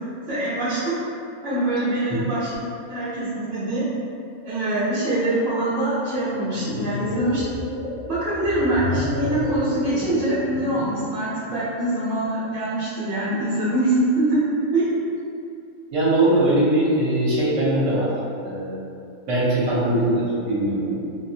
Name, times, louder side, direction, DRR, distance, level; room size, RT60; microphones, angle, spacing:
voice 1, 0.3-1.0 1.4-2.5 2.9-3.8 4.4-7.4 8.0-14.4 14.7-15.1, right 1 dB, 40° right, -14 dB, 0.9 m, -24 dB
sound 1, 6.3-11.1, left 2 dB, 60° left, 0.9 m, -30 dB
voice 2, 15.9-18.1 18.4-18.8 19.3-21.0, right 1 dB, 65° right, -8 dB, 1.1 m, -21 dB
2.7 x 2.5 x 2.7 m, 2.6 s
omnidirectional pair, 1.5 m